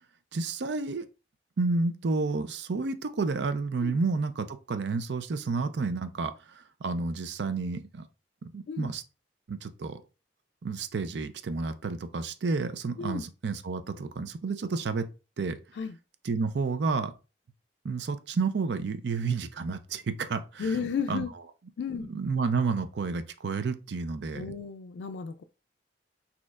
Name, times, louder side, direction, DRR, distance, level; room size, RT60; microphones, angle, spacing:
voice 1, 0.3-1.0 1.6-8.0 8.4-9.0 9.5-10.0 10.6-15.1 15.4-15.6 16.2-17.1 17.8-21.2 21.9-24.5, right 4 dB, 70° right, 0.5 m, -30 dB
voice 2, 20.6-21.3 21.8-22.1 24.3-25.4, left 6 dB, 75° left, 0.3 m, -33 dB
6.3 x 2.8 x 2.4 m
head